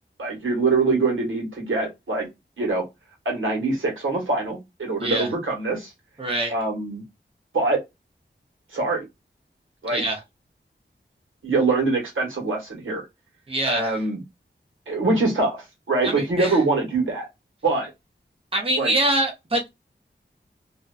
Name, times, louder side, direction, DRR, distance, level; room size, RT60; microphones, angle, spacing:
voice 1, 0.2-2.3 2.6-2.8 3.2-5.9 6.5-7.0 7.5-7.8 8.7-9.0 9.8-10.0 11.4-13.1 13.7-14.2 14.9-17.3 17.6-17.9 18.8-18.9, right 3 dB, 85° right, 1.2 m, -24 dB
voice 2, 6.2-6.5 9.9-10.2 13.5-13.9 16.0-16.6 18.5-19.7, right 1 dB, 30° right, 0.8 m, -24 dB
2.6 x 2.2 x 2.3 m
wide cardioid pair, 45°, 20 cm